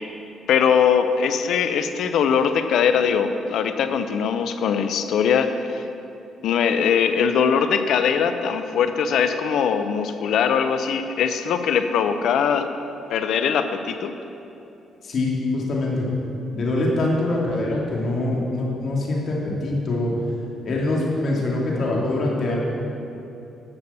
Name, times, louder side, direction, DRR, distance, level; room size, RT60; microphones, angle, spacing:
voice 1, 0.5-5.8 6.4-12.7 13.1-14.2, left 7 dB, 75° left, 9 dB, 0.7 m, -21 dB
voice 2, 15.0-16.1 16.5-20.1 20.6-22.6, left 2 dB, 55° left, -3 dB, 2.7 m, -24 dB
11.0 x 7.0 x 6.9 m, 2.8 s
cardioid pair, 90°, 0 cm